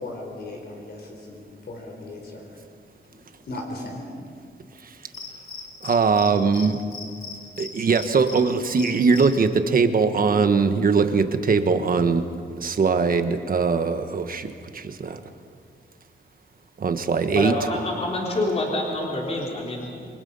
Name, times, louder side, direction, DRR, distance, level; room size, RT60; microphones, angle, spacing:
voice 1, 0.0-2.6 3.1-3.2 3.5-4.0, left 2 dB, 60° left, 1 dB, 4.1 m, -37 dB
Cricket, 5.1-6.3 6.5-6.7 6.9-8.4 8.8-9.3, left 5 dB, 80° left, 4.8 m, -36 dB
voice 2, 5.8-6.8 7.6-12.2 12.6-15.2 16.8-17.5, right 5 dB, 50° right, 8 dB, 1.3 m, -21 dB
voice 3, 17.3-20.2, left 1 dB, 35° left, -2 dB, 3.6 m, -27 dB
28.0 x 24.0 x 5.6 m, 2.1 s
wide cardioid pair, 170°, 19 cm